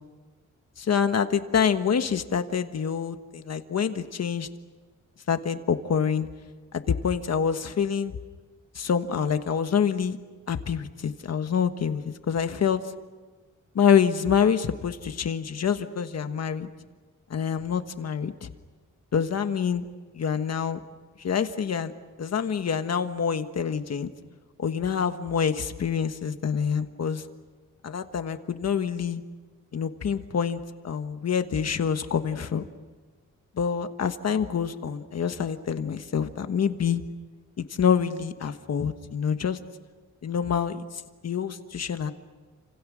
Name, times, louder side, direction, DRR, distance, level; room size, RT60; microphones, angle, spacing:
voice 1, 0.8-4.5 5.3-6.3 6.7-8.2 8.7-10.2 10.5-12.8 13.7-16.7 17.3-18.5 19.1-19.8 20.1-20.8 21.2-21.9 22.2-24.1 24.6-27.2 27.8-29.2 29.7-32.6 33.6-37.0 37.6-39.6 40.2-42.1, left 7 dB, 55° left, 9 dB, 1.4 m, -26 dB
30.0 x 27.0 x 6.3 m, 1.4 s
wide cardioid pair, 160°, 31 cm